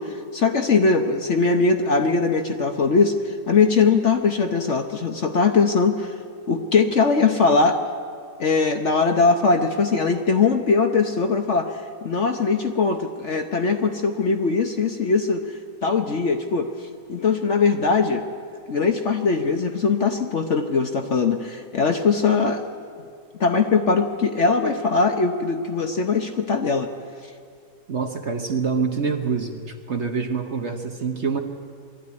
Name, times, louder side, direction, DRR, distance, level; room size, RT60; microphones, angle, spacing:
voice 1, 0.0-6.1 6.5-7.8 8.4-18.2 18.7-22.7 23.4-26.9, left 4 dB, 50° left, 5 dB, 1.1 m, -21 dB
voice 2, 27.9-31.4, right 5 dB, 45° right, 5 dB, 1.2 m, -26 dB
21.0 x 13.5 x 9.6 m, 2.3 s
omnidirectional pair, 1.9 m